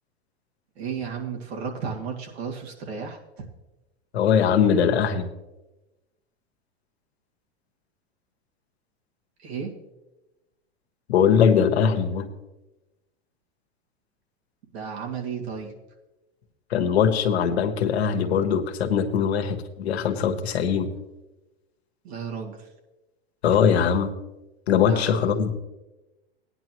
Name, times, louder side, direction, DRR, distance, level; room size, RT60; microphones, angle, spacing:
voice 1, 0.8-3.4 9.4-9.7 14.7-15.7 22.0-22.7 24.9-25.2, right 6 dB, 80° right, 1 dB, 2.4 m, -33 dB
voice 2, 4.1-5.3 11.1-12.3 16.7-20.9 23.4-24.1 24.7-25.5, left 7 dB, 85° left, 7 dB, 1.4 m, -21 dB
16.5 x 10.0 x 3.1 m, 1.0 s
hypercardioid pair, 120°, 31 cm